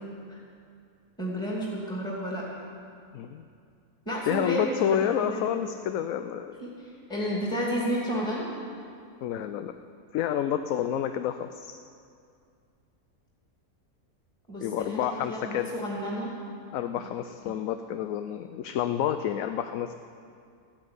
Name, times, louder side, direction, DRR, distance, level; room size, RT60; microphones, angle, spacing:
voice 1, 1.2-2.5 4.1-5.5 6.6-8.5 14.5-16.4 17.0-17.1 17.5-17.6, equal, 5° left, -4 dB, 2.4 m, -31 dB
voice 2, 3.1-3.4 4.3-6.5 9.2-9.7 10.1-11.8 14.6-15.7 16.7-19.9, left 10 dB, 70° left, 9 dB, 0.9 m, -29 dB
13.5 x 8.9 x 9.6 m, 2.4 s
omnidirectional pair, 1.6 m